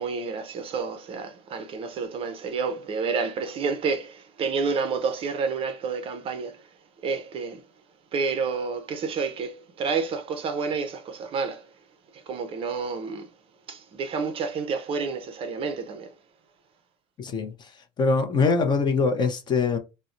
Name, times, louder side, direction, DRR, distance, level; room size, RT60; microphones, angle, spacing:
voice 1, 0.0-6.6 7.0-7.6 8.1-11.6 12.3-13.3 13.7-16.1, right 5 dB, 35° right, 0.5 m, -29 dB
voice 2, 17.2-17.7 18.0-19.8, left 4 dB, 25° left, 0.6 m, -23 dB
4.0 x 2.0 x 2.5 m
cardioid pair, 145°, 16 cm